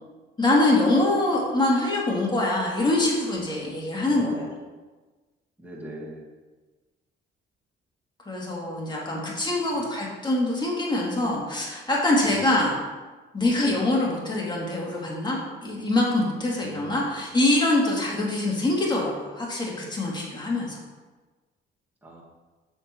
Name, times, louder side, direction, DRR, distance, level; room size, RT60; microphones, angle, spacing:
voice 1, 0.4-4.3 8.3-12.8 13.3-20.8, left 2 dB, 20° left, -3 dB, 2.6 m, -24 dB
voice 2, 4.0-4.5 5.6-6.3 9.7-9.8 12.3-12.5 16.6-17.0 22.0-22.2, right 1 dB, 10° right, -4 dB, 2.3 m, -41 dB
8.1 x 6.5 x 4.6 m, 1.3 s
cardioid pair, 90°, 20 cm